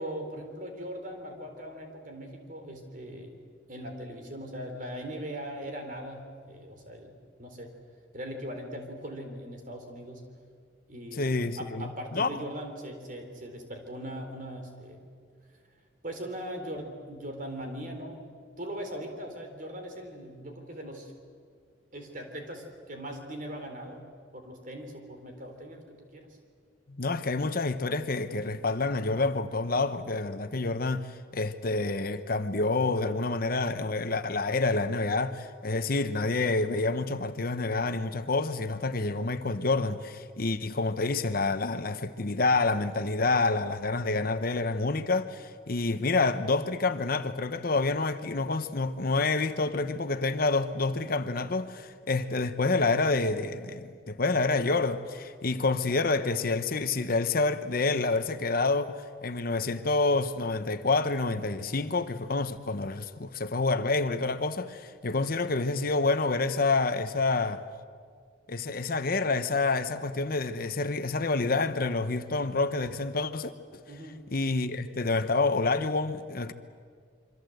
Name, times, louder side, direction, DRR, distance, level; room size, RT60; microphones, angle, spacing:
voice 1, 0.0-3.4 3.7-7.1 7.4-7.7 8.1-10.3 10.9-11.2 11.6-15.0 16.0-18.3 18.6-21.1 21.9-26.4 73.9-74.3, equal, 45° right, 3.9 m, -40 dB
voice 2, 11.1-12.4 26.9-67.6 68.5-73.8 74.3-76.5, left 3 dB, 50° left, 0.9 m, -28 dB
27.0 x 24.5 x 7.9 m
head